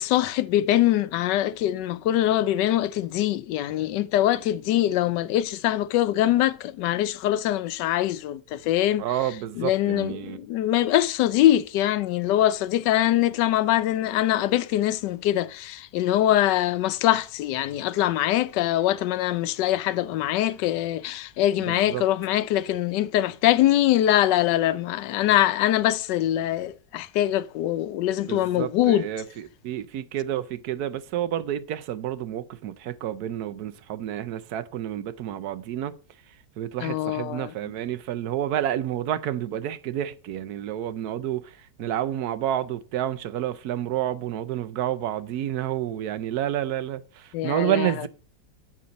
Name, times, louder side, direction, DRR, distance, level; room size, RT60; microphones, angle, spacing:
voice 1, 0.0-9.0 9.6-29.1 36.8-37.5 47.3-47.9, left 13 dB, 80° left, 1.2 m, -23 dB
voice 2, 9.0-10.4 21.6-22.0 28.2-36.0 36.3-48.1, right 11 dB, 70° right, 1.1 m, -29 dB
7.7 x 5.4 x 5.1 m
omnidirectional pair, 1.9 m